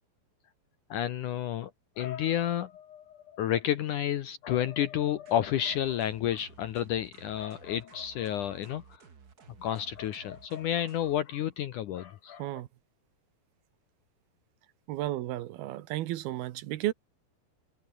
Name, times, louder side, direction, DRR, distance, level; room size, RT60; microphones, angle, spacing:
voice 1, 0.9-1.7 2.0-9.0 9.6-12.6, left 11 dB, 70° left, 2.0 m, -31 dB
sound 1, 5.3-11.2, right 6 dB, 45° right, 1.3 m, -55 dB
voice 2, 14.9-16.9, right 15 dB, 75° right, 2.8 m, -33 dB
omnidirectional pair, 4.7 m